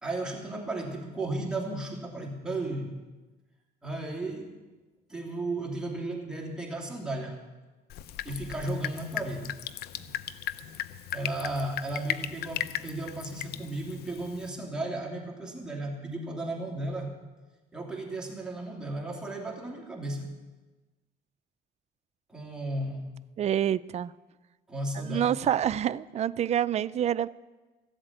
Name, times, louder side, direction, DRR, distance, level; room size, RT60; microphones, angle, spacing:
voice 1, 0.0-3.0 3.8-4.6 5.1-7.4 8.2-9.6 9.9-10.2 11.1-17.1 17.7-20.3 22.3-23.1 24.7-25.4, right 2 dB, 5° right, -2 dB, 2.9 m, -34 dB
Drip, 7.9-14.5, left 12 dB, 70° left, 0.6 m, -37 dB
voice 2, 23.4-24.1 24.9-27.3, right 10 dB, 40° right, 15 dB, 0.4 m, -27 dB
14.5 x 8.0 x 8.9 m, 1.2 s
cardioid pair, 110°, 17 cm